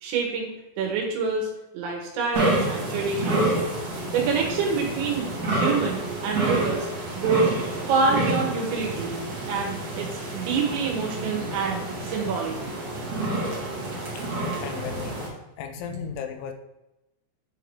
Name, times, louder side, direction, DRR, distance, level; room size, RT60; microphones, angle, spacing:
voice 1, 0.0-3.5 4.1-6.9 7.1-7.5 7.9-9.1 9.5-12.6 15.9-16.0, right 5 dB, 75° right, 1 dB, 3.4 m, -27 dB
sound 1, 2.3-15.3, right 2 dB, 60° right, 1.7 m, -29 dB
voice 2, 14.6-16.5, left 7 dB, 85° left, 6 dB, 3.0 m, -36 dB
9.9 x 3.8 x 3.3 m, 0.94 s
omnidirectional pair, 5.4 m